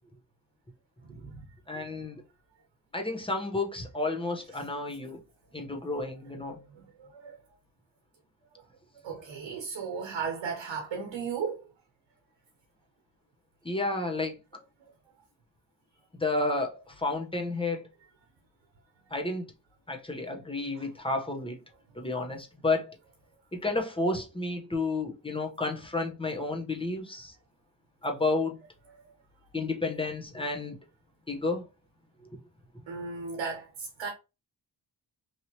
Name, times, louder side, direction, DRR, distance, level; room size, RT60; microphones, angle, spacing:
voice 1, 1.1-1.4 6.5-7.3 9.0-11.6 20.8-20.9 32.9-34.1, right 5 dB, 90° right, 0.8 m, -36 dB
voice 2, 1.7-2.2 2.9-5.2 5.5-6.6 13.6-14.3 16.2-17.8 19.1-19.5 19.9-21.6 22.0-23.0 23.5-27.3 28.0-28.6 29.5-30.7 31.3-31.6, left 2 dB, 10° left, 0.9 m, -31 dB
3.2 x 2.7 x 2.8 m
cardioid pair, 60°, 44 cm